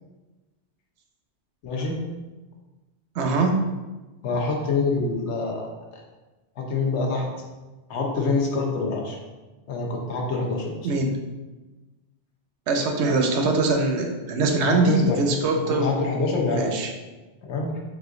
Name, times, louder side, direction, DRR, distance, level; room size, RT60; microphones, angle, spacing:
voice 1, 1.6-2.0 4.2-6.0 6.6-7.3 7.9-9.2 9.7-10.7 14.6-15.2 15.7-16.8 17.4-17.7, left 3 dB, 75° left, -1 dB, 1.1 m, -26 dB
voice 2, 3.2-3.6 10.8-11.2 12.7-15.9 16.5-16.9, right 3 dB, 75° right, 4 dB, 0.9 m, -22 dB
4.3 x 2.5 x 3.7 m, 1.2 s
omnidirectional pair, 1.2 m